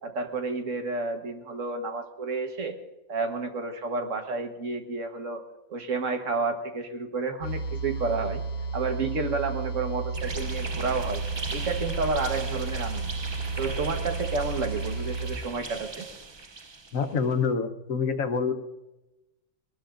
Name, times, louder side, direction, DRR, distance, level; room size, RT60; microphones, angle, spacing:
voice 1, 0.0-2.8 3.1-5.4 5.7-8.4 8.7-11.2 11.5-13.1 13.6-16.1, right 4 dB, 65° right, 5 dB, 1.7 m, -30 dB
sound 1, 7.4-15.4, right 3 dB, 90° left, 1.2 m, -33 dB
sound 2, 10.1-17.2, right 3 dB, 30° right, 0.5 m, -38 dB
voice 2, 16.9-18.5, left 5 dB, 75° left, 6 dB, 1.4 m, -26 dB
22.0 x 19.5 x 2.6 m, 1.0 s
omnidirectional pair, 1.4 m